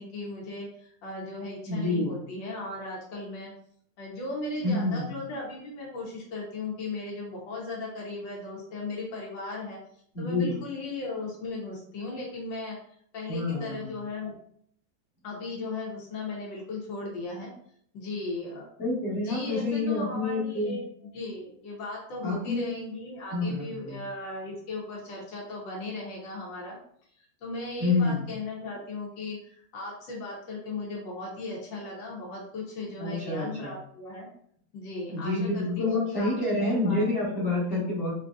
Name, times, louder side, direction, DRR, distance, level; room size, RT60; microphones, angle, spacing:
voice 1, 0.0-3.5 4.0-9.8 10.2-12.8 13.1-14.4 15.2-17.5 17.9-18.6 19.2-26.8 27.4-34.3 34.7-37.5, left 2 dB, 85° left, -3 dB, 1.5 m, -37 dB
voice 2, 1.7-2.2 4.6-5.1 10.1-10.5 13.3-13.9 18.8-20.8 22.2-22.7 23.3-24.0 27.8-28.3 33.0-33.7 35.1-38.1, left 2 dB, 45° left, -5 dB, 1.3 m, -28 dB
4.0 x 2.6 x 2.3 m, 0.64 s
omnidirectional pair, 2.0 m